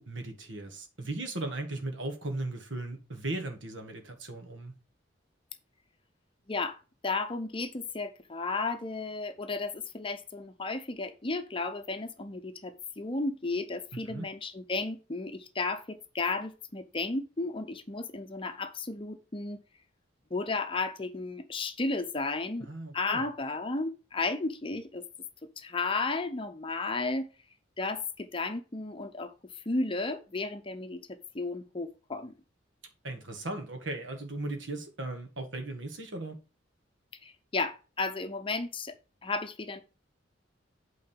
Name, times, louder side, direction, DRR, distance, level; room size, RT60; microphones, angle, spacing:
voice 1, 0.0-4.7 13.9-14.3 22.7-23.3 33.0-36.4, right 2 dB, 80° right, 1.8 m, -37 dB
voice 2, 6.5-6.8 7.0-19.6 20.3-22.7 22.9-25.0 25.6-27.3 27.8-32.3 37.2-38.9 39.2-39.8, left 3 dB, 30° left, 0.7 m, -33 dB
8.5 x 3.9 x 5.3 m
head